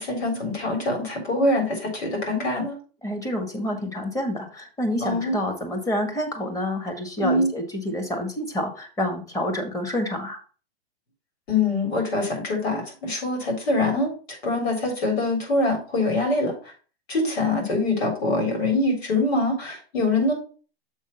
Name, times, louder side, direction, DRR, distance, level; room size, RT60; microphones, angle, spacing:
voice 1, 0.0-2.8 5.0-5.4 7.2-7.5 11.5-14.1 14.4-16.5 17.1-20.3, left 2 dB, 80° left, 2 dB, 3.9 m, -24 dB
voice 2, 3.0-10.4, left 1 dB, 10° left, 3 dB, 1.4 m, -28 dB
7.3 x 3.6 x 5.5 m, 0.38 s
hypercardioid pair, 135°, 31 cm